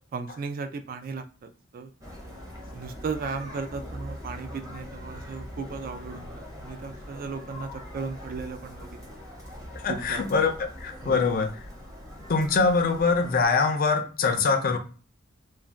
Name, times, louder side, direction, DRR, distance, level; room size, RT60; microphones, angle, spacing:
voice 1, 0.1-1.9 2.7-9.2 9.9-10.2 11.0-11.3, right 4 dB, 45° right, 8 dB, 0.3 m, -36 dB
sound 1, 2.0-13.4, equal, 15° right, 0.8 m, -42 dB
voice 2, 9.7-11.5 12.3-14.8, left 4 dB, 45° left, 6 dB, 0.4 m, -23 dB
2.5 x 2.1 x 3.3 m, 0.37 s
head